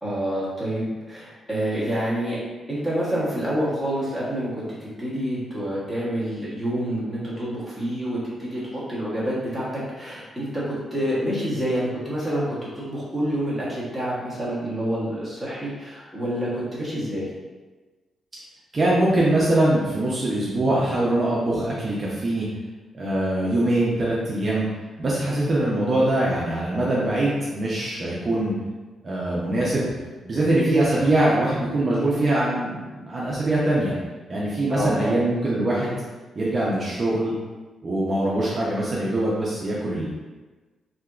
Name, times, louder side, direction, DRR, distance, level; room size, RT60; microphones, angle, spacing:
voice 1, 0.0-2.4 2.7-17.3 34.7-35.2, equal, 5° left, -9 dB, 0.9 m, -27 dB
voice 2, 18.7-22.5 22.9-24.7 25.0-28.5 29.0-29.9 30.2-33.9 34.3-36.0 36.3-37.3 37.8-40.1, right 1 dB, 30° right, -6 dB, 0.5 m, -23 dB
3.5 x 2.8 x 2.3 m, 1.3 s
wide cardioid pair, 170°, 0 cm